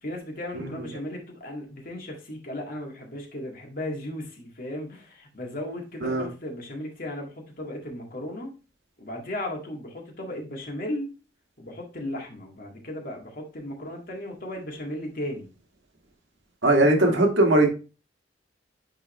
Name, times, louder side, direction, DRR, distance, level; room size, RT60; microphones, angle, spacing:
voice 1, 0.0-8.5 9.0-11.1 11.6-15.5 17.0-17.2, left 1 dB, 50° left, 1 dB, 1.9 m, -36 dB
voice 2, 16.6-17.7, right 1 dB, 85° right, 3 dB, 1.6 m, -20 dB
9.4 x 4.0 x 3.1 m, 0.33 s
head